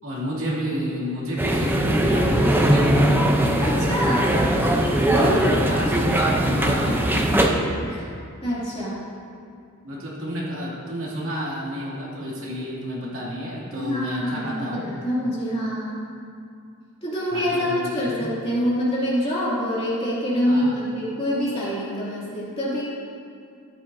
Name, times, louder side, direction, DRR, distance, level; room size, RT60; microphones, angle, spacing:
voice 1, 0.0-3.3 5.2-7.1 9.8-14.8 17.3-18.3 20.5-20.8, equal, 65° right, -6 dB, 2.6 m, -31 dB
sound 1, 1.4-7.5, right 1 dB, 10° right, 0.6 m, -20 dB
voice 2, 3.6-4.4 5.1-5.6 7.5-8.0 8.4-9.0 13.8-16.0 17.0-22.8, equal, 25° left, -8 dB, 2.6 m, -25 dB
13.5 x 10.0 x 2.7 m, 2.4 s
head